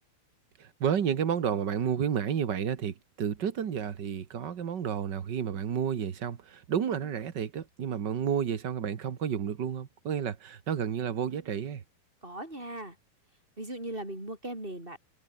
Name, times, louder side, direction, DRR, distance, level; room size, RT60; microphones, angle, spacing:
voice 1, 0.6-11.8, right 8 dB, 75° right, 1.0 m, -31 dB
voice 2, 12.2-13.0 13.6-15.0, right 1 dB, 15° right, 7.4 m, -38 dB
omnidirectional pair, 4.4 m